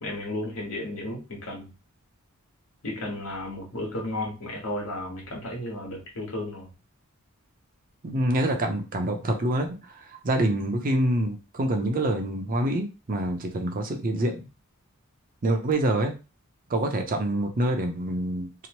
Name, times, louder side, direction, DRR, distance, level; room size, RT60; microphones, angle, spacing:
voice 1, 0.0-1.7 2.8-6.7, left 1 dB, 75° left, -1 dB, 1.2 m, -33 dB
voice 2, 8.0-14.5 15.4-16.1 16.7-18.7, right 1 dB, 40° right, 4 dB, 0.5 m, -26 dB
2.8 x 2.0 x 2.9 m, 0.30 s
head